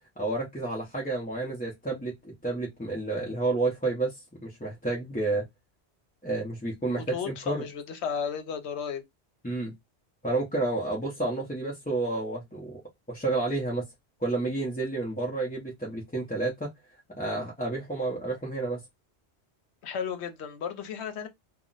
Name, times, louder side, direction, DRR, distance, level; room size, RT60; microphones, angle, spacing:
voice 1, 0.2-5.5 6.2-7.6 9.4-9.7 10.2-12.8 13.1-13.9 14.2-16.7 17.2-18.8, right 2 dB, 10° left, 0.5 m, -30 dB
voice 2, 7.1-9.0 19.8-21.3, left 7 dB, 75° left, 0.9 m, -34 dB
2.4 x 2.1 x 3.8 m
omnidirectional pair, 1.1 m